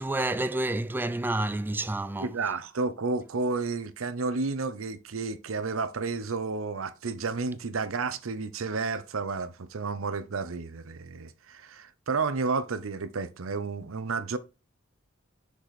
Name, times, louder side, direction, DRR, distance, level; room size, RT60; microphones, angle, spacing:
voice 1, 0.0-2.3, right 2 dB, 10° right, 0.3 m, -29 dB
voice 2, 2.2-14.4, right 4 dB, 85° right, 0.7 m, -31 dB
6.5 x 4.8 x 4.1 m
head